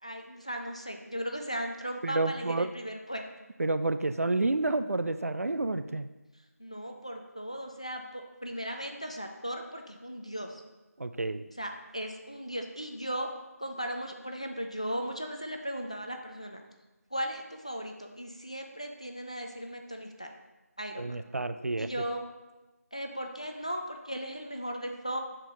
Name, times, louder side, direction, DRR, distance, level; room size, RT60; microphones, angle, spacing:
voice 1, 0.0-3.2 6.6-10.6 11.6-13.3 13.6-16.6 17.1-20.3 20.8-21.2 21.8-22.2 22.9-25.2, equal, 25° left, 4 dB, 0.3 m, -37 dB
voice 2, 2.0-2.7 3.6-6.1 11.0-11.5 21.0-21.9, right 2 dB, 60° right, 11 dB, 0.4 m, -29 dB
5.7 x 4.4 x 4.4 m, 1.1 s
figure-of-eight pair, 175°, 9 cm